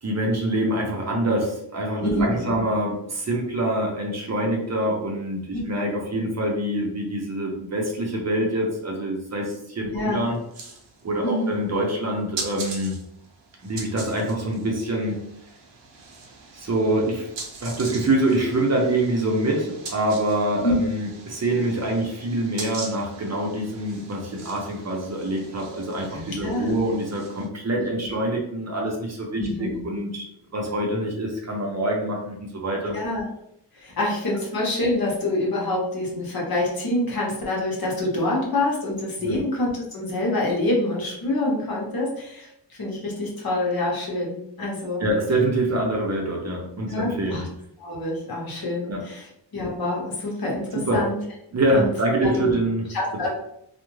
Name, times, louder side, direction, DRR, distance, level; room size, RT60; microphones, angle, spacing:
voice 1, 0.0-10.4 11.0-13.0 13.6-15.2 16.5-17.3 17.6-30.3 30.5-33.0 39.2-39.4 45.0-47.4 48.9-49.1 50.7-51.0 51.5-52.9, right 1 dB, 40° right, -1 dB, 0.6 m, -25 dB
voice 2, 2.0-2.6 5.5-5.6 9.9-10.2 11.2-11.5 20.6-20.8 26.1-26.8 29.4-29.8 32.9-33.2 33.7-45.0 46.9-47.5 47.8-51.2 51.7-51.9 52.2-52.5 52.9-53.3, left 1 dB, 60° left, -3 dB, 0.9 m, -26 dB
sound 1, 10.1-27.5, right 3 dB, 85° right, 0.7 m, -41 dB
2.3 x 2.1 x 3.0 m, 0.76 s
wide cardioid pair, 135°, 42 cm